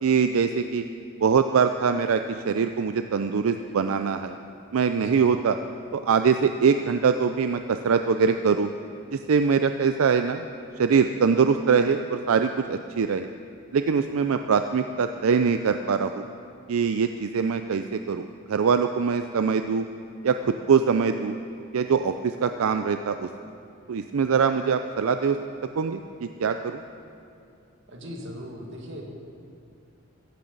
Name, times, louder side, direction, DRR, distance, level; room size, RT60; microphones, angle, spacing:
voice 1, 0.0-0.8 1.2-4.4 4.7-5.6 5.9-8.7 9.1-10.5 10.8-13.3 13.7-16.2 16.7-19.9 20.2-21.4 21.7-23.3 23.9-25.4 25.8-26.8, right 6 dB, 90° right, 8 dB, 0.4 m, -23 dB
voice 2, 27.9-29.0, equal, 60° right, 0 dB, 2.0 m, -39 dB
15.0 x 15.0 x 4.0 m, 2.5 s
head